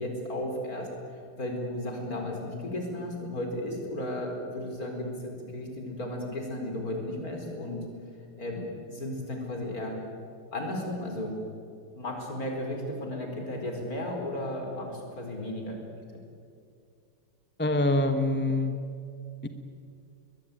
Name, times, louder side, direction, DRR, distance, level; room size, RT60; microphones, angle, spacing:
voice 1, 0.0-7.9 8.4-10.0 10.5-11.4 11.9-15.8, left 1 dB, 40° left, 2 dB, 5.0 m, -34 dB
voice 2, 17.6-18.7 19.4-19.5, left 2 dB, 10° left, 7 dB, 0.7 m, -25 dB
22.0 x 21.5 x 9.2 m, 2.4 s
omnidirectional pair, 2.4 m